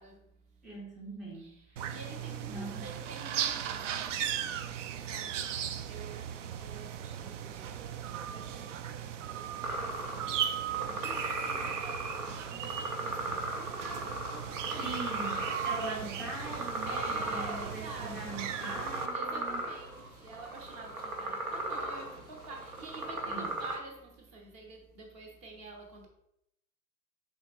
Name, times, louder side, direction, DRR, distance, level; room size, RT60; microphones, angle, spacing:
voice 1, 0.0-0.8 1.3-15.8 16.8-18.5 19.1-26.1, right 3 dB, 35° right, 1.2 m, -49 dB
voice 2, 0.6-1.5 1.7-1.8 2.5-2.9 14.8-19.6 23.3-23.5, right 2 dB, ahead, 0.4 m, -41 dB
sound 1, 1.8-19.1, right 9 dB, 60° right, 0.5 m, -37 dB
sound 2, 9.6-23.8, right 2 dB, 80° right, 1.0 m, -37 dB
5.6 x 3.8 x 2.5 m
figure-of-eight pair, 95°, 43 cm